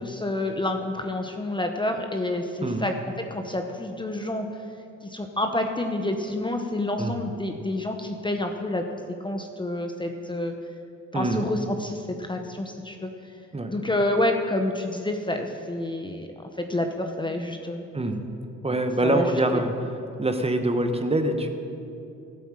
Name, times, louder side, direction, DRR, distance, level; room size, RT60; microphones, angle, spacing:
voice 1, 0.0-4.5 5.0-10.5 11.1-13.1 13.7-16.3 16.6-17.8 19.0-19.6, left 1 dB, 15° left, 5 dB, 0.9 m, -28 dB
voice 2, 11.1-11.5 13.5-13.7 17.3-17.4 17.9-18.2 18.6-19.7 20.2-21.5, right 1 dB, 20° right, 7 dB, 1.2 m, -25 dB
13.0 x 8.6 x 7.5 m, 2.6 s
cardioid pair, 90°, 30 cm